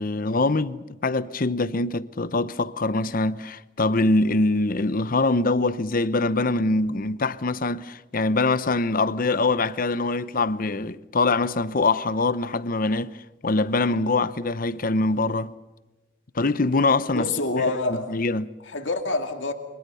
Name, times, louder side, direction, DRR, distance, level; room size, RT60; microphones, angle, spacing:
voice 1, 0.0-13.2 13.4-15.5 16.3-17.3 17.6-18.5, left 3 dB, 45° left, 0.8 m, -24 dB
voice 2, 17.1-18.2 18.6-19.5, left 3 dB, 75° left, 2.3 m, -26 dB
29.0 x 25.0 x 5.7 m
head